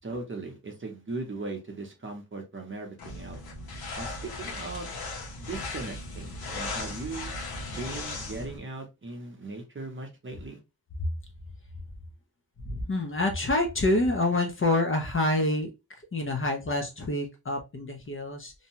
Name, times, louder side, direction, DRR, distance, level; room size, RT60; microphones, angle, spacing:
voice 1, 0.0-3.4 4.0-4.9 5.4-7.3 7.7-10.6, right 3 dB, 35° right, 2 dB, 0.7 m, -38 dB
sound 1, 3.0-8.6, left 2 dB, 75° left, 1.0 m, -37 dB
voice 2, 12.6-15.7 16.1-18.5, left 2 dB, 35° left, 3 dB, 0.6 m, -27 dB
2.7 x 2.2 x 2.8 m, 0.25 s
wide cardioid pair, 125°, 37 cm